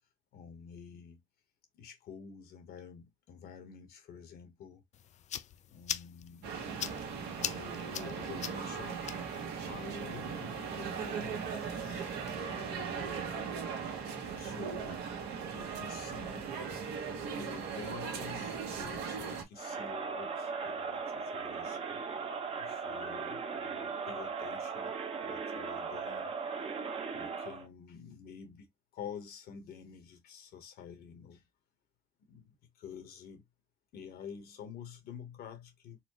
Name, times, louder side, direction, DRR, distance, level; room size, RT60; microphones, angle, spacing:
voice 1, 0.3-1.2 1.7-4.8 5.7-6.5 7.4-9.1 9.5-12.1 12.4-13.4 14.1-15.0 15.5-16.5 17.1-22.0 22.6-24.9 25.2-26.3 27.1-28.7 28.9-31.4 32.2-33.4 33.9-36.0, left 7 dB, 65° left, 1.2 m, -49 dB
sound 1, 4.9-12.3, left 10 dB, 45° left, 0.4 m, -44 dB
sound 2, 6.4-19.4, right 6 dB, 80° right, 1.3 m, -38 dB
Crowd, 19.6-27.7, right 5 dB, 35° right, 0.8 m, -38 dB
4.2 x 2.1 x 3.0 m
cardioid pair, 110°, 17 cm